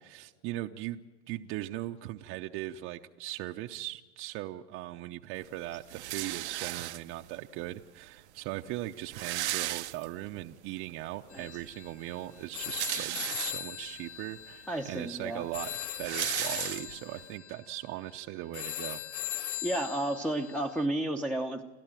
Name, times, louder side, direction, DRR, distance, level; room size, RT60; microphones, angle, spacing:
voice 1, 0.1-19.0, right 15 dB, 40° right, 4 dB, 0.8 m, -39 dB
sound 1, 5.9-7.3 8.2-8.3 8.5-8.6 8.8-10.4 10.9-11.0 12.4-13.9 14.5-14.6 14.9-17.2, right 15 dB, 85° right, 0.9 m, -36 dB
sound 2, 11.3-20.9, left 12 dB, 85° left, 1.3 m, -40 dB
voice 2, 14.7-15.4 19.6-21.6, right 1 dB, 5° left, 6 dB, 0.9 m, -32 dB
29.5 x 13.5 x 9.0 m, 1.4 s
supercardioid pair, 135°, 33 cm